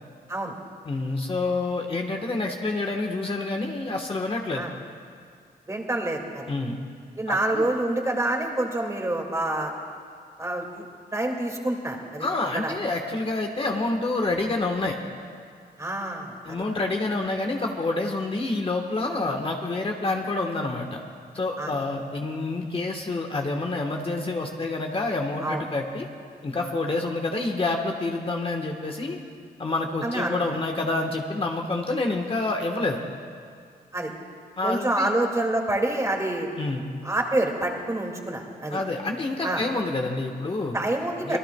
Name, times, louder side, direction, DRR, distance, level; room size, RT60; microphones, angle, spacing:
voice 1, 0.8-4.7 6.5-6.8 7.3-7.7 12.2-15.0 16.4-21.0 21.3-26.1 26.4-29.2 29.6-33.0 34.6-35.2 36.6-36.8 38.7-40.8 41.2-41.4, left 2 dB, 35° left, 2 dB, 1.2 m, -28 dB
voice 2, 5.7-6.4 7.2-9.7 10.4-10.8 11.1-12.3 12.5-12.7 15.8-16.6 21.6-21.7 25.4-25.6 30.0-30.6 33.9-34.1 34.6-36.5 37.0-38.8 39.4-39.6 40.7-41.4, right 1 dB, 20° right, 1 dB, 2.1 m, -27 dB
25.0 x 18.0 x 2.3 m, 2.2 s
cardioid pair, 85°, 17 cm